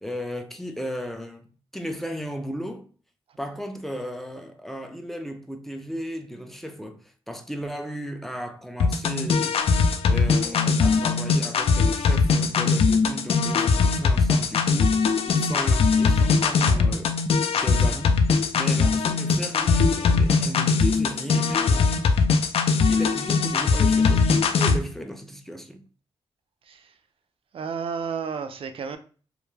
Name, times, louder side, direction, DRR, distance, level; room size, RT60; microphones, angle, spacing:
voice 1, 0.0-2.9 3.4-17.2 17.5-22.2 22.9-24.3 24.6-25.8, equal, 5° left, 0.4 m, -35 dB
sound 1, 8.8-24.8, left 4 dB, 70° left, 0.4 m, -21 dB
voice 2, 27.5-29.0, right 6 dB, 60° right, 0.4 m, -32 dB
2.2 x 2.0 x 3.1 m
cardioid pair, 90°, 10 cm